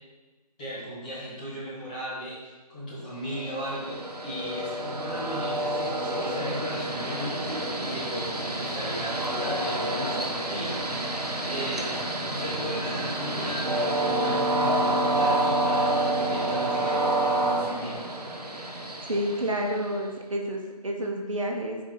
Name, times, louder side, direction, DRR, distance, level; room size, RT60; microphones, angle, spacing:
voice 1, 0.6-7.4 7.8-9.1 9.4-10.7 11.5-12.0 12.3-13.9 14.2-18.0, equal, 10° left, -10 dB, 1.0 m, -36 dB
Train, 3.3-20.1, right 1 dB, 75° right, 1.1 m, -28 dB
voice 2, 19.0-21.8, equal, 55° right, 1 dB, 1.0 m, -29 dB
4.8 x 4.5 x 5.2 m, 1.2 s
figure-of-eight pair, 165°, 20 cm